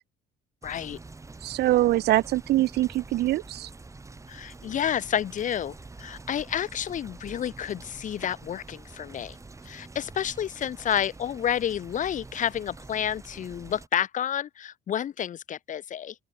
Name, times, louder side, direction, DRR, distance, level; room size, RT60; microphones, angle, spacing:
voice 1, 0.6-1.0 4.3-9.4 9.6-16.1, left 9 dB, 50° left, 1.5 m, -30 dB
sound 1, 0.6-13.9, right 3 dB, 20° right, 6.3 m, -46 dB
voice 2, 1.4-3.7, right 16 dB, 75° right, 2.0 m, -23 dB
open air
cardioid pair, 110°, 17 cm